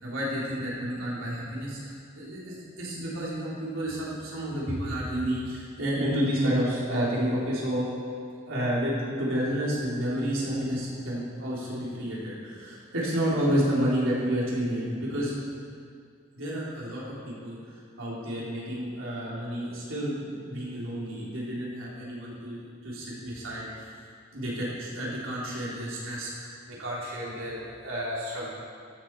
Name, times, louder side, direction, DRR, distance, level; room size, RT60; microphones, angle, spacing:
voice 1, 0.0-7.9 8.5-15.3 16.4-23.9 24.3-28.5, equal, 85° right, -6 dB, 3.2 m, -30 dB
14.5 x 7.3 x 4.7 m, 2.2 s
head